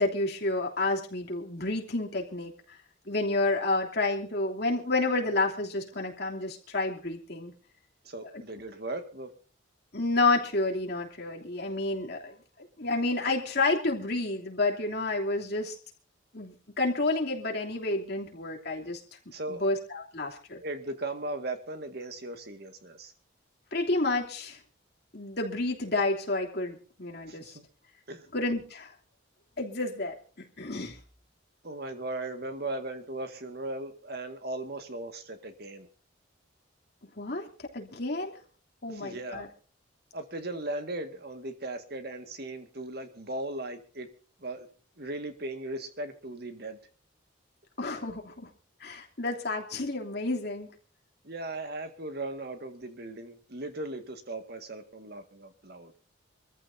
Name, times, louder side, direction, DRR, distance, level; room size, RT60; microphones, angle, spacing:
voice 1, 0.0-2.5 3.1-7.5 8.3-8.4 9.9-15.7 16.3-19.0 19.5-20.6 23.7-24.6 25.1-27.6 28.3-28.9 29.6-30.1 30.6-31.0 37.2-37.5 37.7-38.4 38.8-39.5 47.8-48.5 48.8-50.7, left 2 dB, 55° left, 0 dB, 3.1 m, -30 dB
voice 2, 8.0-9.3 19.3-19.7 20.6-23.1 27.3-27.7 28.1-28.3 31.6-35.9 38.9-39.5 40.1-44.1 44.4-44.7 45.0-46.8 51.2-55.9, right 2 dB, 50° right, 7 dB, 1.9 m, -37 dB
25.0 x 14.5 x 2.8 m, 0.39 s
head